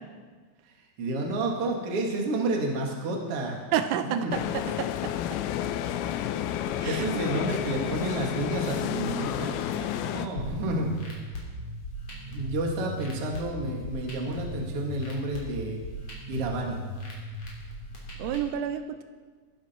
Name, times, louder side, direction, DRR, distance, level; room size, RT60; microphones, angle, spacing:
voice 1, 0.6-3.6 4.0-4.3 6.8-11.0 12.3-15.8 16.3-16.8, right 2 dB, 50° right, 0 dB, 1.7 m, -30 dB
voice 2, 3.7-4.4 4.8-5.1 6.8-7.0 18.2-19.0, right 10 dB, 85° right, 9 dB, 3.4 m, -29 dB
sound 1, 4.3-10.3, left 11 dB, 85° left, 3.3 m, -31 dB
sound 2, 10.4-18.4, equal, 35° left, 3.5 m, -38 dB
20.0 x 11.5 x 4.5 m, 1.5 s
omnidirectional pair, 5.9 m